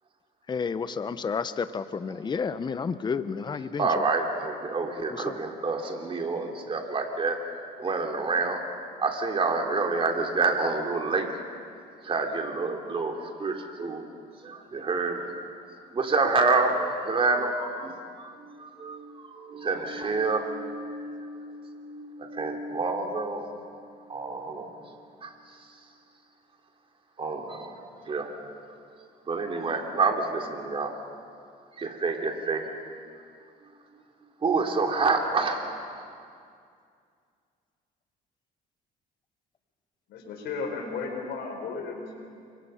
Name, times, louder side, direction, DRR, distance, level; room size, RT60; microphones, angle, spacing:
voice 1, 0.5-4.1 5.1-5.4, left 5 dB, 25° left, 12 dB, 0.8 m, -31 dB
voice 2, 3.8-8.6 9.0-11.3 12.0-14.0 14.4-15.3 15.9-17.9 18.2-23.5 24.1-24.7 25.2-25.3 27.2-28.5 29.3-31.0 31.8-32.7 34.4-35.8, right 3 dB, 30° right, 2 dB, 3.1 m, -28 dB
voice 3, 40.1-42.2, left 4 dB, 80° left, 3 dB, 5.0 m, -34 dB
29.0 x 24.0 x 5.7 m, 2.3 s
cardioid pair, 110°, 17 cm